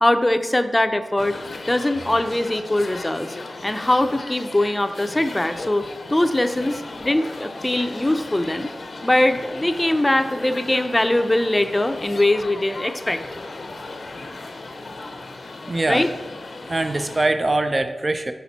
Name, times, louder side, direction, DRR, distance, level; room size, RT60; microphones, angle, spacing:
voice 1, 0.0-1.4 1.7-3.4 3.6-5.8 6.1-8.7 9.0-13.2 15.9-16.1, left 1 dB, 20° left, 8 dB, 0.5 m, -21 dB
sound 1, 1.2-17.3, left 2 dB, 65° left, 0.7 m, -36 dB
voice 2, 15.7-16.1 16.7-18.3, right 2 dB, 40° right, 8 dB, 0.5 m, -22 dB
5.8 x 4.8 x 4.1 m, 1.3 s
cardioid pair, 40°, 0 cm